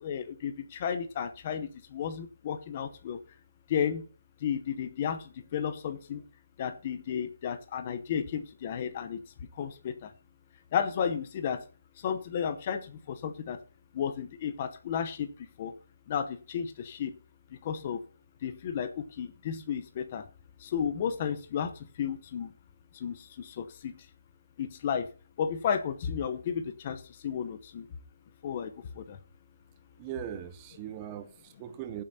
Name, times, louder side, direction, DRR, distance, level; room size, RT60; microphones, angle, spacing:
voice 1, 0.0-3.2 3.7-4.0 4.4-5.2 5.5-6.2 6.6-9.2 9.6-9.9 10.7-11.6 12.0-13.6 13.9-15.3 15.6-15.7 16.1-17.1 17.6-18.0 18.4-18.9 19.2-20.2 20.7-21.7 22.0-22.5 23.0-23.1 23.6-23.9 24.6-25.1 25.4-27.8 28.4-28.7 29.0-29.2, left 8 dB, 20° left, 0.9 m, -32 dB
voice 2, 30.0-32.0, right 10 dB, 10° right, 0.5 m, -39 dB
15.0 x 7.6 x 4.3 m
hypercardioid pair, 180°, 0 cm